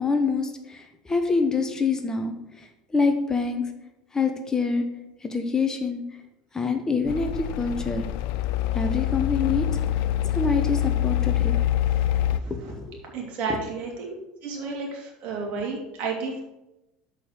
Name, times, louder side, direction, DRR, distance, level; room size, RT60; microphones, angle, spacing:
voice 1, 0.0-2.3 2.9-3.6 4.1-4.8 5.2-6.0 6.5-8.0 8.7-9.7 10.3-11.5 12.5-13.0, left 4 dB, 20° left, 6 dB, 1.0 m, -25 dB
sound 1, 7.1-12.4, left 12 dB, 70° left, 0.4 m, -25 dB
voice 2, 12.4-12.7 13.1-14.1 14.4-16.4, right 4 dB, 55° right, 0 dB, 2.8 m, -32 dB
6.8 x 5.3 x 6.6 m, 0.93 s
hypercardioid pair, 85°, 3 cm